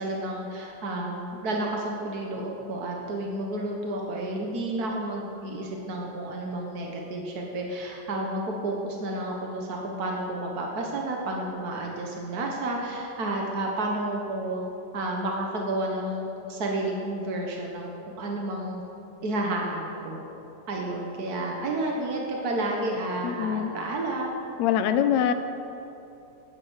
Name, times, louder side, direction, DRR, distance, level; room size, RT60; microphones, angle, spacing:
voice 1, 0.0-14.6 14.9-18.8 19.2-20.2 20.7-24.3 25.0-25.1, right 1 dB, 65° right, 0 dB, 0.9 m, -31 dB
voice 2, 23.2-23.7 24.6-25.3, left 9 dB, 80° left, 9 dB, 1.6 m, -24 dB
16.5 x 9.4 x 6.4 m, 2.9 s
omnidirectional pair, 3.9 m